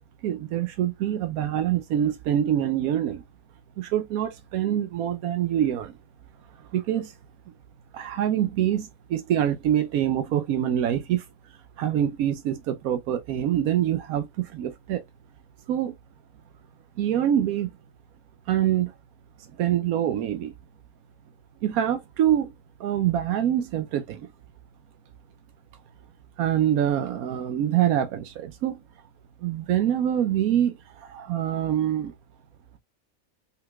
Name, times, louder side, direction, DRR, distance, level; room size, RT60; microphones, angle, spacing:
voice 1, 0.2-3.2 3.8-5.9 6.7-7.1 7.9-11.3 11.8-15.0 15.7-15.9 17.0-17.7 18.5-18.9 19.6-20.5 21.6-22.5 22.8-24.3 26.4-28.8 29.4-32.1, right 10 dB, 85° right, 1.1 m, -25 dB
5.4 x 4.0 x 2.3 m
omnidirectional pair, 1.5 m